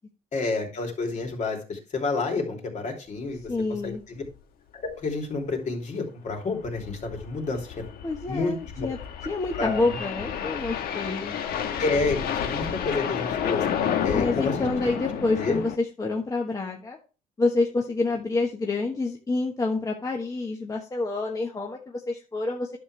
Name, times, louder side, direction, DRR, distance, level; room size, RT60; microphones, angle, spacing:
voice 1, 0.3-3.4 3.8-4.2 4.7-7.8 8.3-8.9 9.6-10.0 11.8-14.7 15.3-15.6, left 3 dB, 45° left, 2 dB, 3.1 m, -29 dB
sound 1, 3.4-3.5 3.8-3.9 4.2-4.3 4.9-5.1 6.4-15.8, left 8 dB, 65° left, 1.4 m, -31 dB
voice 2, 3.5-4.0 8.0-9.0 9.2-11.4 14.1-17.0 17.4-22.8, left 3 dB, 20° left, 0 dB, 1.3 m, -28 dB
10.5 x 6.7 x 3.3 m, 0.33 s
cardioid pair, 110°, 17 cm